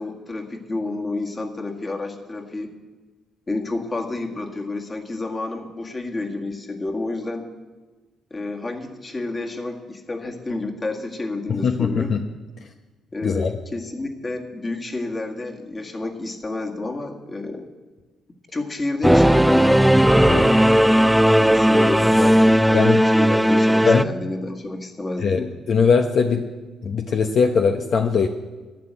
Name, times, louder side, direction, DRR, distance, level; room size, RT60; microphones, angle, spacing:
voice 1, 0.0-2.7 3.5-7.5 8.3-12.1 13.1-17.7 18.5-20.6 21.4-25.5, left 2 dB, 30° left, 3 dB, 1.9 m, -30 dB
voice 2, 11.5-12.2 13.2-13.5 20.3-20.4 22.7-23.0 23.8-24.1 25.2-26.4 26.8-28.3, left 5 dB, 60° left, 4 dB, 0.9 m, -20 dB
Singing / Musical instrument, 19.0-24.0, equal, 5° right, 0.4 m, -16 dB
12.0 x 9.6 x 8.1 m, 1.3 s
cardioid pair, 90°, 0 cm